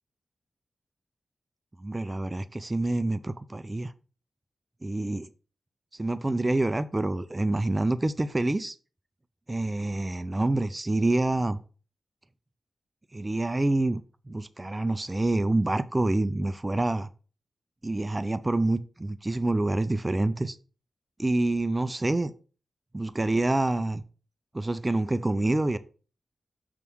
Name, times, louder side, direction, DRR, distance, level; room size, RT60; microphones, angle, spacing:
voice 1, 1.8-3.9 4.8-5.3 6.0-8.7 9.5-11.6 13.1-14.0 14.3-17.1 17.8-20.6 21.2-22.3 22.9-24.0 24.5-25.8, right 2 dB, 20° right, 0.4 m, -27 dB
6.8 x 3.7 x 6.2 m
wide cardioid pair, 145°, 0 cm